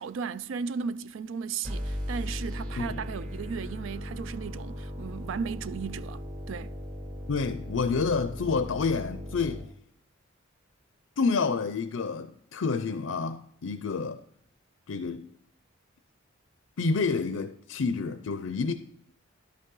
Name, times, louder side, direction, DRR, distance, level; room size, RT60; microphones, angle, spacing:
voice 1, 0.0-6.7, right 5 dB, 70° right, 0.4 m, -35 dB
sound 1, 1.6-9.6, equal, 45° right, 2.2 m, -37 dB
voice 2, 7.3-9.7 11.2-14.2 14.9-15.3 16.8-18.7, left 4 dB, 85° left, 0.5 m, -29 dB
11.5 x 5.5 x 3.8 m
head